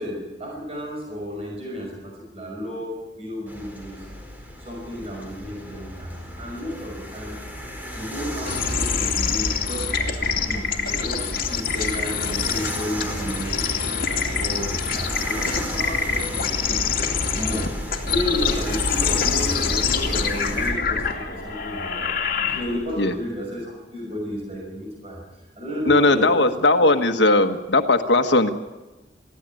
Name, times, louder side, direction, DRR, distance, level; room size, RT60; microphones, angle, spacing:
voice 1, 0.0-4.1 4.6-7.4 7.9-17.0 17.3-17.7 18.0-26.5, left 1 dB, 35° right, -1 dB, 5.8 m, -32 dB
sound 1, 3.5-20.7, equal, 10° right, 4.5 m, -34 dB
sound 2, 8.5-23.0, left 5 dB, 55° left, 2.7 m, -25 dB
voice 2, 25.9-28.5, left 2 dB, 80° left, 6 dB, 1.3 m, -18 dB
22.5 x 15.5 x 8.9 m, 1.1 s
head